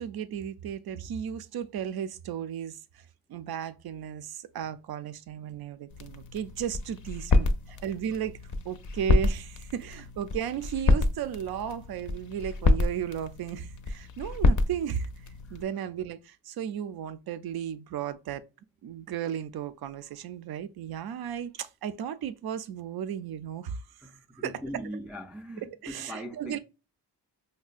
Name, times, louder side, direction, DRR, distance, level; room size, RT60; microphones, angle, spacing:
voice 1, 0.0-3.0 3.3-7.5 7.8-8.4 8.6-15.1 15.5-18.4 18.8-23.8 24.4-24.5 25.8-26.6, right 9 dB, 60° right, 0.5 m, -35 dB
sound 1, 5.9-15.7, left 2 dB, 45° left, 0.5 m, -28 dB
voice 2, 7.3-7.8 15.4-15.6 24.0-26.6, equal, 5° right, 0.4 m, -41 dB
5.3 x 2.1 x 2.4 m
cardioid pair, 90°, 42 cm